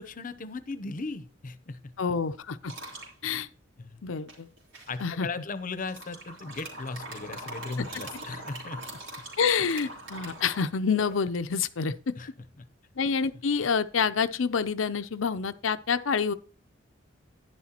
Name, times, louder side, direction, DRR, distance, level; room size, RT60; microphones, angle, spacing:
voice 1, 0.0-1.9 3.8-4.0 4.9-9.0 12.2-12.3 12.6-12.7, left 3 dB, 45° left, 0.7 m, -37 dB
voice 2, 2.0-2.7 3.2-3.5 4.0-4.5 5.0-5.3 9.4-12.1 13.0-16.3, left 6 dB, 80° left, 0.6 m, -27 dB
sound 1, 2.7-3.1 4.3-5.0 5.8-11.2, right 2 dB, 75° right, 3.8 m, -42 dB
11.5 x 10.5 x 2.9 m
head